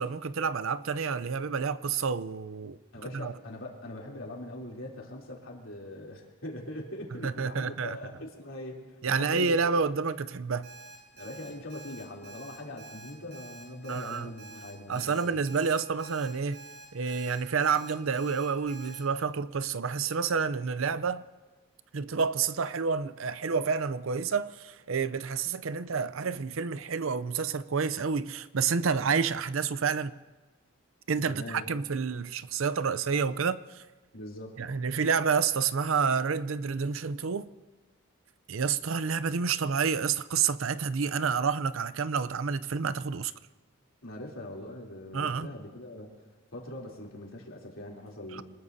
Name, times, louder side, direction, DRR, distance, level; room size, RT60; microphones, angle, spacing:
voice 1, 0.0-2.8 3.1-3.3 7.2-8.0 9.0-10.7 13.9-14.3 14.9-16.6 16.9-21.2 21.9-30.1 31.1-33.8 34.6-37.5 38.5-43.3 45.1-45.5 48.3-48.4, right 5 dB, 75° right, 0.6 m, -29 dB
voice 2, 2.9-9.6 11.2-15.4 31.3-31.7 34.1-34.6 44.0-46.1 46.5-48.4, left 1 dB, 75° left, 3.3 m, -42 dB
Alarm, 10.6-19.0, right 3 dB, 55° right, 7.8 m, -48 dB
26.0 x 20.0 x 2.8 m
head